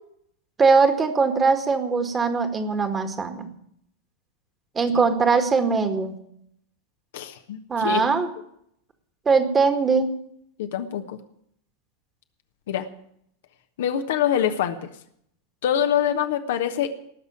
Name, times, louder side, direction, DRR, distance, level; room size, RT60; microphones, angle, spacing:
voice 1, 0.6-3.5 4.8-6.2 7.7-8.3 9.3-10.1, right 4 dB, 20° right, 7 dB, 1.9 m, -21 dB
voice 2, 7.1-8.0 10.6-11.2 12.7-12.9 13.8-14.8 15.6-16.9, left 9 dB, 55° left, 7 dB, 1.2 m, -24 dB
19.0 x 6.8 x 9.2 m, 0.70 s
figure-of-eight pair, 90°, 0 cm